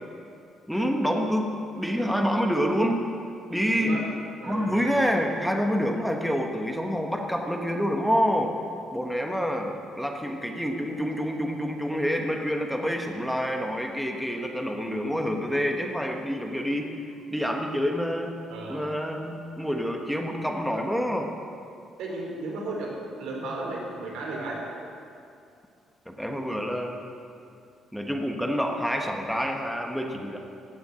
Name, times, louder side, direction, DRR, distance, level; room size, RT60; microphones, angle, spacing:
voice 1, 0.7-3.0 3.5-4.1 4.4-8.6 8.9-16.9 17.3-18.3 18.7-21.3 26.1-27.0 27.9-30.4, equal, ahead, 2 dB, 1.2 m, -27 dB
voice 2, 3.7-4.1 4.4-4.8 18.5-18.9 22.0-24.7, right 2 dB, 85° right, -1 dB, 3.6 m, -34 dB
15.5 x 6.9 x 8.8 m, 2.5 s
cardioid pair, 115°, 0 cm